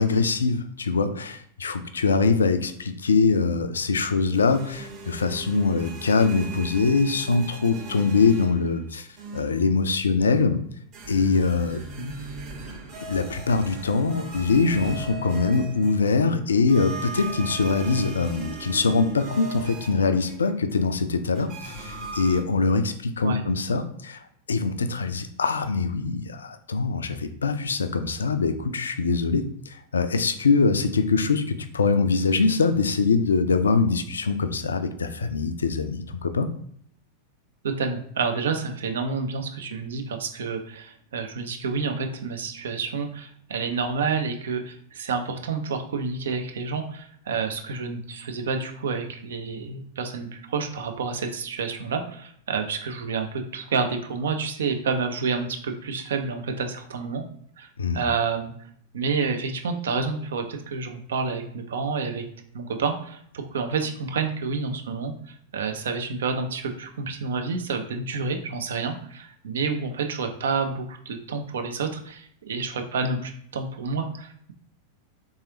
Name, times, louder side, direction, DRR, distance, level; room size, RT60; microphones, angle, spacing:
voice 1, 0.0-9.1 9.3-10.6 11.1-11.8 13.1-24.2 24.5-36.5 57.8-58.0, left 4 dB, 70° left, 10 dB, 0.3 m, -23 dB
sound 1, 4.3-8.8 9.2-9.7 10.9-16.3 16.7-20.7 21.4-22.4, right 3 dB, 40° right, 1.2 m, -39 dB
voice 2, 37.6-57.2 57.6-57.7 57.9-58.5 58.9-62.2 62.5-74.5, right 4 dB, 65° right, 5 dB, 0.5 m, -29 dB
3.6 x 3.1 x 2.8 m, 0.64 s
figure-of-eight pair, 90°, 0 cm